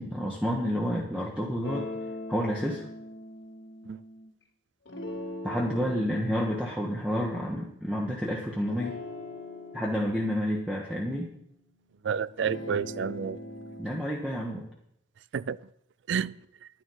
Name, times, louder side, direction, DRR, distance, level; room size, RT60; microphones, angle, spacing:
voice 1, 0.0-1.9 2.3-2.8 5.4-9.0 9.7-11.3 13.8-14.6, equal, 5° right, 1.2 m, -29 dB
sound 1, 1.6-4.3 4.9-8.3 8.7-11.8 12.3-13.9, left 1 dB, 70° left, 2.3 m, -41 dB
voice 2, 12.0-13.4 15.3-15.6 16.1-16.4, right 7 dB, 70° right, 0.4 m, -30 dB
11.0 x 9.3 x 5.6 m
head